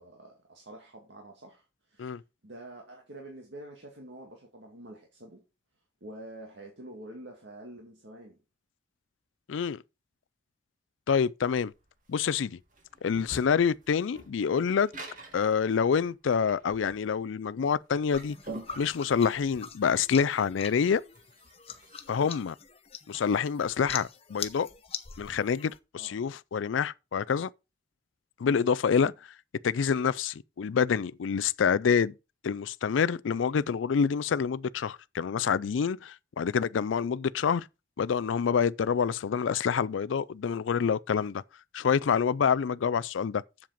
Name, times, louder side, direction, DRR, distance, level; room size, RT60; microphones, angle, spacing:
voice 1, 0.0-5.4 6.0-8.4 26.0-26.2, right 1 dB, 70° right, 2.1 m, -47 dB
voice 2, 9.5-9.8 11.1-11.7 12.1-12.6 13.0-14.9 15.3-18.4 18.8-21.0 22.1-22.6 23.1-24.7 25.2-27.5 28.4-29.1 29.6-32.1 32.4-37.7 38.0-41.4 41.7-43.4, left 6 dB, 90° left, 0.4 m, -27 dB
sound 1, 11.7-22.1, right 2 dB, 45° right, 2.4 m, -47 dB
sound 2, 18.1-25.8, left 7 dB, 30° left, 0.8 m, -43 dB
7.6 x 7.3 x 5.1 m
head